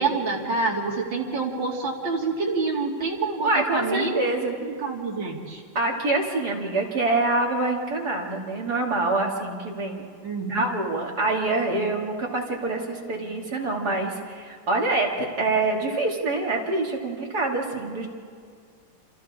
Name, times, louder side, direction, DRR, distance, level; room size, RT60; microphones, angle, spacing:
voice 1, 0.0-4.2 4.6-5.6 10.2-10.7, right 4 dB, 80° right, -3 dB, 3.2 m, -27 dB
voice 2, 3.4-4.5 5.7-10.1 10.5-18.1, right 2 dB, 55° right, -2 dB, 3.3 m, -25 dB
28.5 x 27.5 x 3.7 m, 2.2 s
omnidirectional pair, 2.0 m